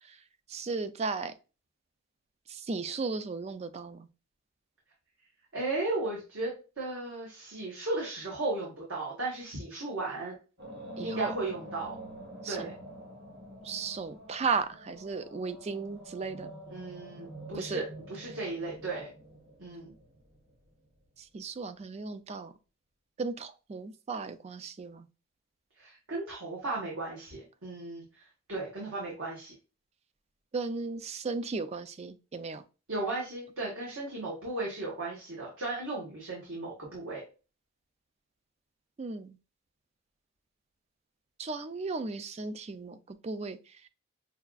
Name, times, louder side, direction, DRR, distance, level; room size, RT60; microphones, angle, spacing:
voice 1, 0.5-1.3 2.5-4.1 11.0-11.3 12.4-12.7 13.6-16.5 17.6-17.8 21.3-22.5 23.2-25.1 30.5-32.6 39.0-39.4 41.4-43.6, right 4 dB, 30° right, 0.3 m, -35 dB
voice 2, 5.5-10.3 11.0-11.9 12.5-12.7 16.7-19.1 19.6-19.9 25.8-28.0 28.5-29.5 32.9-37.2, right 2 dB, 65° right, 1.3 m, -35 dB
sound 1, 10.6-20.7, right 1 dB, 50° right, 1.1 m, -46 dB
5.6 x 2.4 x 2.3 m
head